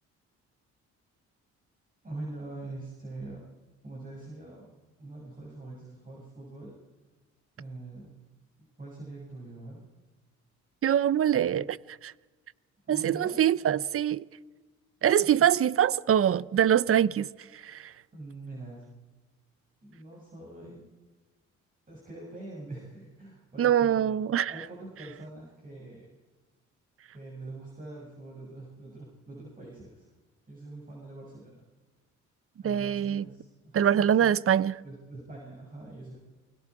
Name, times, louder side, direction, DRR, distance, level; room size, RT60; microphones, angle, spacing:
voice 1, 2.0-3.4 3.8-4.7 5.0-6.8 7.6-8.2 8.8-9.8 12.8-13.4 15.2-15.3 18.1-18.8 19.8-20.9 21.9-24.2 24.5-26.1 27.1-30.1 30.5-31.6 32.6-34.3 34.8-36.2, right 2 dB, 25° right, 6.8 m, -44 dB
voice 2, 10.8-12.1 12.9-14.3 15.0-17.9 23.6-24.5 32.6-33.3 33.7-34.8, right 10 dB, 50° right, 0.7 m, -24 dB
28.5 x 21.5 x 4.8 m
cardioid pair, 90°, 30 cm